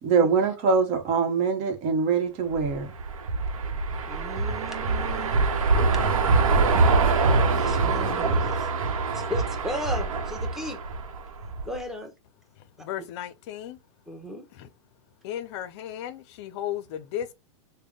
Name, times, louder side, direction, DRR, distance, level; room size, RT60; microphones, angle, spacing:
voice 1, 0.0-2.9, right 5 dB, 45° right, 1.1 m, -23 dB
sound 1, 2.5-11.8, right 3 dB, 80° right, 0.9 m, -24 dB
voice 2, 4.1-5.5 7.5-8.7 9.1-10.8 11.6-12.1 14.1-14.5, equal, ahead, 0.9 m, -35 dB
voice 3, 12.6-13.8 14.5-14.7 15.2-17.3, left 11 dB, 55° left, 0.5 m, -35 dB
3.4 x 2.1 x 3.7 m
hypercardioid pair, 120°, 17 cm